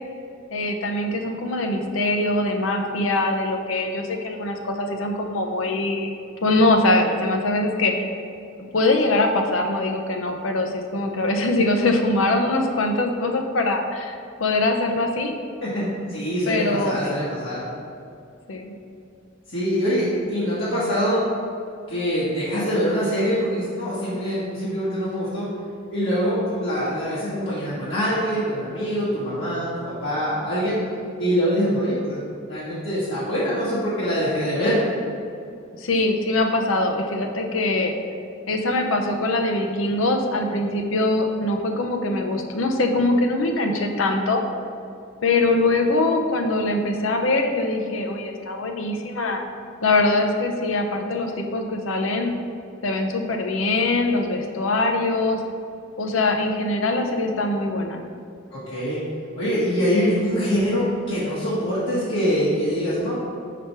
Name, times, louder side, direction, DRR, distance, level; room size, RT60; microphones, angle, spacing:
voice 1, 0.5-6.1 6.4-7.9 8.7-15.3 16.5-17.1 18.5-18.7 35.8-37.9 38.5-44.4 45.2-49.4 49.8-52.3 52.8-55.4 56.0-58.0, left 2 dB, 90° left, 4 dB, 0.7 m, -22 dB
voice 2, 15.6-17.6 19.5-21.2 21.9-25.5 25.9-30.8 31.2-32.2 32.5-34.8 58.5-59.0 59.3-63.2, equal, 70° left, -10 dB, 1.4 m, -24 dB
5.0 x 4.4 x 5.9 m, 2.5 s
head